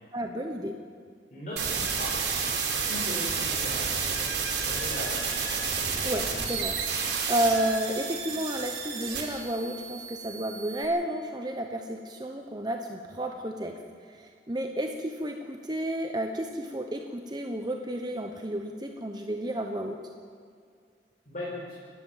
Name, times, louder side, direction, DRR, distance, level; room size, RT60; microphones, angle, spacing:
voice 1, 0.1-0.8 6.0-6.8 7.3-13.7 14.0-20.0, right 1 dB, 25° right, 3 dB, 1.1 m, -31 dB
voice 2, 1.3-2.2 2.9-3.9 4.5-5.3 21.2-21.8, left 1 dB, 45° left, -6 dB, 4.9 m, -38 dB
sound 1, 1.6-10.8, right 5 dB, 75° right, 4.5 m, -31 dB
29.5 x 12.0 x 7.5 m, 2.2 s
head